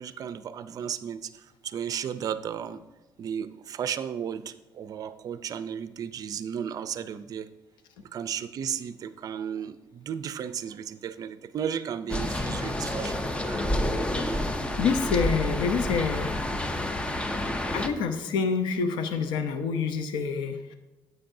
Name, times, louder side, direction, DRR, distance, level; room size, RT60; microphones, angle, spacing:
voice 1, 0.0-2.8 3.2-7.5 8.1-14.5, right 8 dB, 50° right, 13 dB, 0.5 m, -34 dB
sound 1, 12.1-17.9, left 1 dB, 15° left, 0.6 m, -29 dB
voice 2, 14.8-16.4 17.7-20.7, left 5 dB, 80° left, 8 dB, 0.7 m, -27 dB
10.0 x 7.9 x 2.7 m, 1.1 s
cardioid pair, 110°, 8 cm